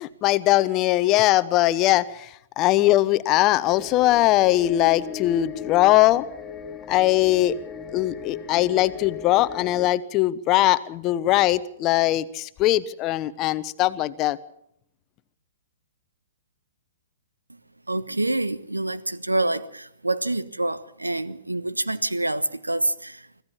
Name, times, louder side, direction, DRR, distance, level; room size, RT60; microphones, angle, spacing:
voice 1, 0.0-6.3 6.9-7.6 7.9-14.4, left 15 dB, 30° left, 1.0 m, -21 dB
sound 1, 3.6-9.9, left 7 dB, 10° left, 2.4 m, -38 dB
voice 2, 17.9-23.4, right 2 dB, 90° right, 1.2 m, -27 dB
25.5 x 15.5 x 7.2 m
figure-of-eight pair, 115°, 0 cm